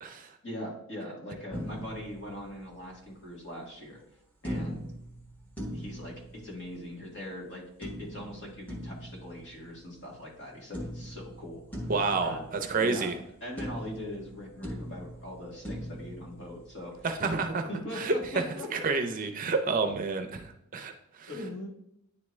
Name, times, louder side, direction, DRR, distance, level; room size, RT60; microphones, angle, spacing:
voice 1, 0.4-4.0 4.4-4.8 5.7-11.6 12.2-13.1 13.4-17.4 17.7-18.9 21.3-21.7, left 1 dB, 55° left, -2 dB, 2.0 m, -41 dB
sound 1, 1.5-3.0 4.4-7.1 7.8-10.4 10.7-13.3 13.6-17.0, equal, 5° left, 1.0 m, -41 dB
voice 2, 11.9-13.1 17.0-17.7 17.9-18.1 18.7-21.3, right 4 dB, 35° right, 6 dB, 0.5 m, -29 dB
9.6 x 3.5 x 3.2 m, 0.76 s
head